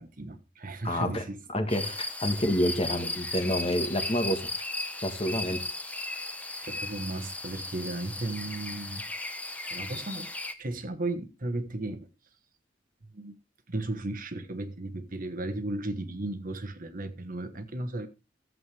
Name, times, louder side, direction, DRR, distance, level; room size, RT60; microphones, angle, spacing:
voice 1, 0.0-1.4 1.8-2.0 6.6-9.1 9.7-10.3 10.6-12.1 13.1-13.3 13.7-18.1, right 2 dB, 45° right, 1.3 m, -35 dB
voice 2, 0.8-1.2 1.5-4.4 5.0-5.6, equal, 30° left, 1.5 m, -28 dB
sound 1, 1.7-10.5, left 2 dB, 10° left, 0.9 m, -36 dB
14.0 x 7.8 x 3.4 m
head